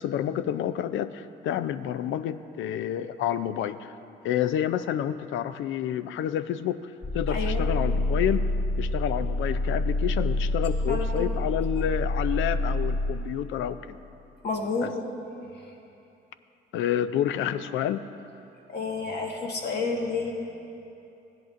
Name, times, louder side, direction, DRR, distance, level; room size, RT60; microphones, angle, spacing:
voice 1, 0.0-3.9 4.2-8.5 8.8-14.0 14.8-14.9 16.7-18.1, left 10 dB, 80° left, 13 dB, 0.4 m, -29 dB
sound 1, 7.0-13.1, left 2 dB, 15° left, 0.7 m, -27 dB
voice 2, 7.3-7.7 10.9-11.3 14.4-14.9 18.7-20.3, left 4 dB, 55° left, 0 dB, 1.5 m, -30 dB
15.0 x 10.5 x 2.5 m, 2.8 s
cardioid pair, 90°, 20 cm